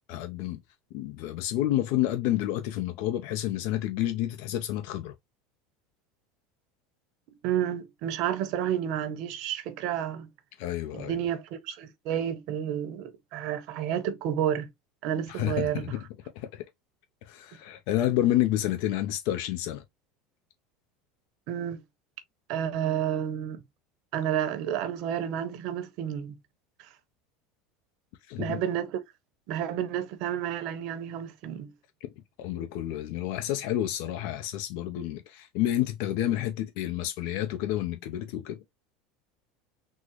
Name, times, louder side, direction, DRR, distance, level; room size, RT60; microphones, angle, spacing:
voice 1, 0.1-0.6 0.9-5.1 10.6-11.2 15.3-16.0 16.3-16.7 17.2-19.8 28.3-28.6 32.0-32.1 32.4-38.6, left 13 dB, 70° left, 0.5 m, -29 dB
voice 2, 7.3-10.3 10.9-14.7 15.0-15.8 21.5-21.8 22.5-23.6 24.1-26.4 28.4-29.0 29.5-31.7, right 10 dB, 65° right, 0.7 m, -30 dB
3.7 x 2.0 x 2.9 m
supercardioid pair, 105°, 0 cm